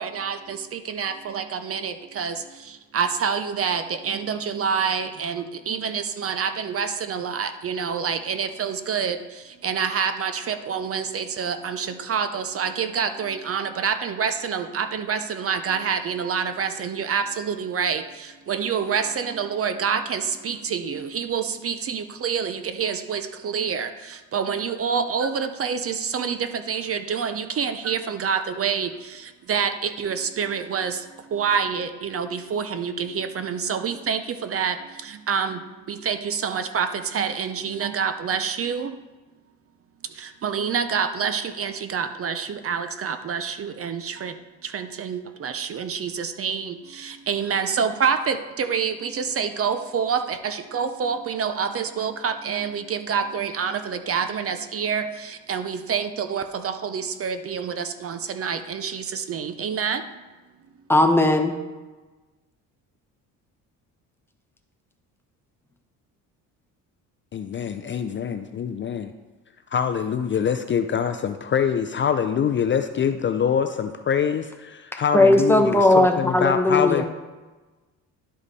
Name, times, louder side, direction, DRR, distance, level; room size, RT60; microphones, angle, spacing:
voice 1, 0.0-35.6 35.9-39.0 40.1-60.2, right 6 dB, 40° right, 9 dB, 0.6 m, -27 dB
voice 2, 60.9-61.5 75.1-77.0, left 1 dB, 5° left, 4 dB, 0.9 m, -17 dB
voice 3, 67.3-69.1 69.7-77.0, left 7 dB, 35° left, 8 dB, 0.5 m, -24 dB
11.0 x 5.0 x 4.1 m, 1.2 s
cardioid pair, 95°, 35 cm